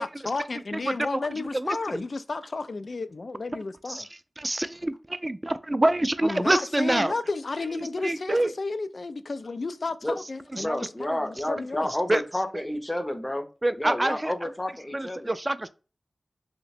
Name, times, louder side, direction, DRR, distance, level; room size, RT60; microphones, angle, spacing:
voice 1, 0.0-4.1 6.2-11.9, left 3 dB, 70° left, 0.3 m, -32 dB
voice 2, 1.5-2.0 3.9-4.1 4.4-7.1 7.8-8.5 10.5-10.6 12.1-12.2 13.6-14.3 14.9-15.7, right 1 dB, 30° right, 0.3 m, -26 dB
voice 3, 10.6-13.5 13.8-15.3, left 1 dB, 20° left, 0.6 m, -30 dB
2.8 x 2.1 x 4.1 m
wide cardioid pair, 50°, 0 cm